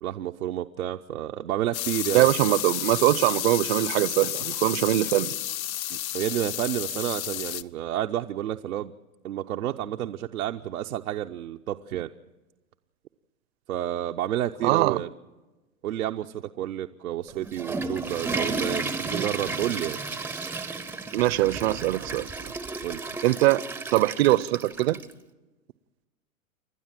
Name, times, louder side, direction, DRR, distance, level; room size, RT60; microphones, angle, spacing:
voice 1, 0.0-2.6 5.9-8.9 9.2-12.1 13.7-15.1 15.8-20.0 22.8-23.0, right 12 dB, 80° right, 0.8 m, -30 dB
sound 1, 1.7-7.6, left 13 dB, 70° left, 0.8 m, -31 dB
voice 2, 2.1-5.3 14.6-15.0 21.1-22.5 23.2-23.6 23.9-25.0, right 17 dB, 45° right, 0.7 m, -22 dB
Water / Toilet flush, 17.3-25.1, right 3 dB, 5° right, 0.6 m, -33 dB
29.0 x 12.0 x 7.5 m
hypercardioid pair, 125°, 43 cm